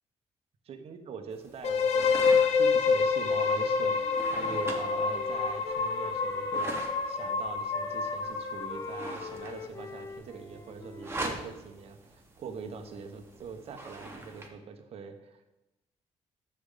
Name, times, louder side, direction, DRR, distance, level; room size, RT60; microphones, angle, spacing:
voice 1, 0.6-15.5, right 5 dB, 60° right, 6 dB, 1.1 m, -43 dB
sound 1, 1.3-14.5, right 2 dB, 20° right, 1.3 m, -44 dB
sound 2, 1.6-9.4, left 5 dB, 75° left, 0.8 m, -28 dB
Wind instrument woodwind instrument, 3.7-7.4 7.7-11.8, left 3 dB, 25° left, 0.5 m, -44 dB
10.0 x 6.9 x 4.0 m, 0.97 s
cardioid pair, 120°, 11 cm